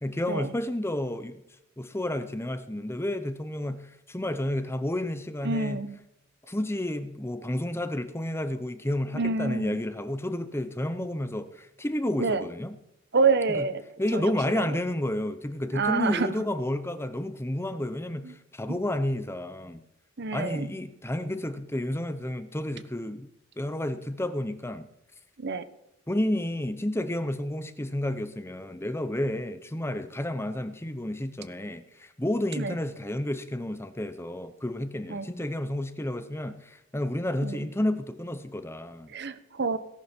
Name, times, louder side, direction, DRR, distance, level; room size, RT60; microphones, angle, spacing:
voice 1, 0.0-1.4 1.8-5.9 6.5-12.7 13.5-13.7 14.0-19.8 20.3-23.3 23.6-24.9 26.1-39.1, left 1 dB, 10° left, 0.8 m, -31 dB
voice 2, 5.4-6.0 9.1-9.8 12.2-12.4 13.1-13.8 14.1-14.6 15.7-16.3 18.2-18.3 20.2-20.7 25.4-25.6 32.6-32.7 35.1-35.3 37.4-37.6 39.1-39.8, right 4 dB, 55° right, 1.0 m, -27 dB
18.0 x 11.0 x 4.5 m
head